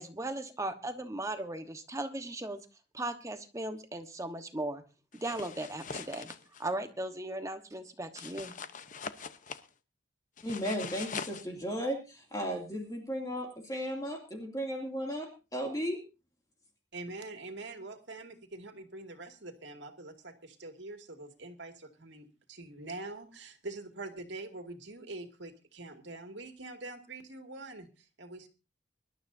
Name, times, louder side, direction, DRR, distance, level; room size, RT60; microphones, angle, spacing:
voice 1, 0.0-2.6 2.9-4.8 5.2-6.3 6.6-8.5, right 2 dB, 15° right, 8 dB, 1.3 m, -37 dB
sound 1, 5.1-6.6 8.2-9.7 10.4-11.4, left 6 dB, 45° left, 0.9 m, -42 dB
voice 2, 10.4-16.0, equal, 20° left, 1 dB, 2.6 m, -35 dB
voice 3, 16.9-28.5, right 2 dB, 75° right, 5 dB, 2.3 m, -44 dB
24.5 x 12.5 x 2.7 m, 0.30 s
head